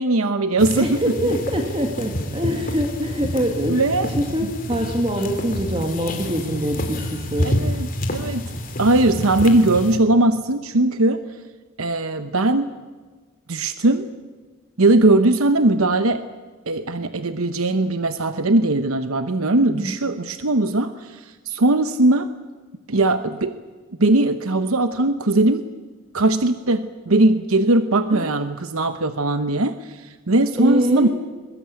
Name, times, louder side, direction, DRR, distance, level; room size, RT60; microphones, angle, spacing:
voice 1, 0.0-1.0 3.7-4.1 7.4-8.4 8.8-11.2 11.8-12.7 13.5-14.1 14.8-16.2 16.7-22.3 22.9-23.5 24.0-25.7 26.1-31.1, right 2 dB, 80° right, 10 dB, 1.0 m, -19 dB
sound 1, 0.6-10.0, equal, 40° left, 2.9 m, -28 dB
voice 2, 0.8-3.8 4.2-7.5 19.7-19.9 28.1-28.3 30.6-31.1, equal, 25° right, 3 dB, 2.3 m, -24 dB
22.0 x 22.0 x 8.6 m, 1.4 s
head